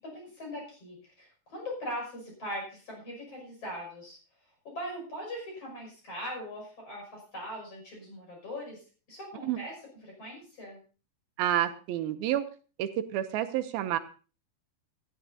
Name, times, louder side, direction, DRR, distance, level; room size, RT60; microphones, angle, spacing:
voice 1, 0.0-4.2 4.7-8.8 9.1-9.8 10.0-10.8, equal, 40° left, 0 dB, 7.0 m, -40 dB
voice 2, 11.4-12.5 12.8-14.0, right 12 dB, 80° right, 9 dB, 2.5 m, -29 dB
18.5 x 13.0 x 2.7 m, 0.36 s
omnidirectional pair, 4.4 m